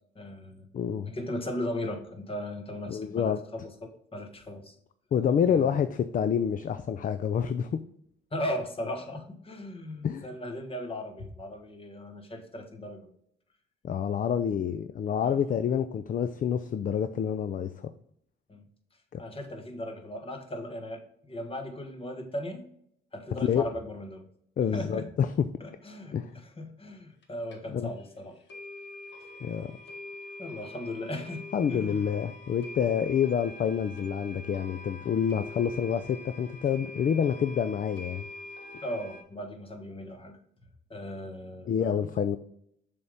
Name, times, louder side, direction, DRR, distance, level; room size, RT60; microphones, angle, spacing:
voice 1, 0.1-0.6 1.0-4.7 5.5-5.8 8.3-13.1 15.2-15.4 18.5-18.6 19.2-22.7 23.1-24.2 24.7-25.0 25.6-28.4 30.4-31.4 31.7-32.1 38.8-40.4 40.9-42.1, left 1 dB, 30° left, 6 dB, 1.3 m, -37 dB
voice 2, 0.7-1.1 2.9-3.4 5.1-7.7 10.0-10.3 13.8-17.9 19.1-19.2 23.4-23.6 24.6-25.5 26.1-26.3 27.7-27.9 29.4-29.8 31.5-38.3 41.7-42.4, left 8 dB, 45° left, 11 dB, 0.4 m, -28 dB
sound 1, 27.2-27.3 27.5-27.6 28.0-28.1 28.5-39.2, left 2 dB, 60° left, 1.6 m, -45 dB
6.8 x 3.6 x 5.1 m, 0.69 s
cardioid pair, 90°, 20 cm